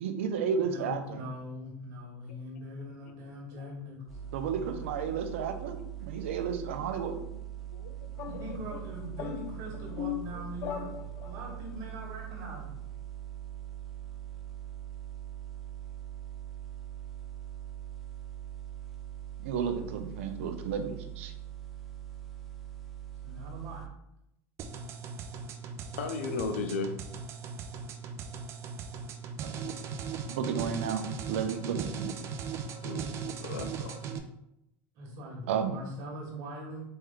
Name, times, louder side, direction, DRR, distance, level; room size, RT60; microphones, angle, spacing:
voice 1, 0.0-1.2 4.3-7.2 19.4-21.3 29.4-29.6 30.3-32.1 35.5-35.7, right 7 dB, 85° right, 8 dB, 0.6 m, -32 dB
voice 2, 0.6-4.8 8.2-10.9 11.2-12.8 23.2-23.9 34.9-36.8, equal, 60° right, -1 dB, 1.4 m, -42 dB
sound 1, 4.1-23.9, right 11 dB, 5° left, 0.7 m, -42 dB
voice 3, 5.5-5.9 7.0-7.1 7.8-7.9 8.3-8.6 10.1-10.4 26.0-26.9 32.8-33.1 33.4-34.0, left 4 dB, 85° left, 6 dB, 0.7 m, -36 dB
sound 2, 8.1-11.6, left 10 dB, 45° left, 0.5 m, -40 dB
sound 3, 24.6-34.2, right 6 dB, 45° right, 0.6 m, -38 dB
4.4 x 3.2 x 3.7 m, 0.83 s
supercardioid pair, 110°, 7 cm